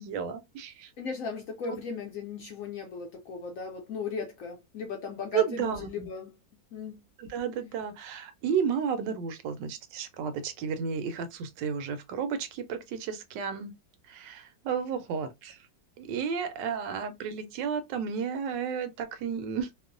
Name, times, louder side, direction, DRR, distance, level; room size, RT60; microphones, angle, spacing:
voice 1, 0.0-0.9 1.7-1.8 5.3-6.1 7.2-13.7 14.1-15.6 16.0-19.7, right 7 dB, 85° right, 1.2 m, -32 dB
voice 2, 1.0-6.3 6.7-7.0, left 4 dB, 70° left, 0.8 m, -37 dB
3.0 x 2.0 x 2.4 m
omnidirectional pair, 1.9 m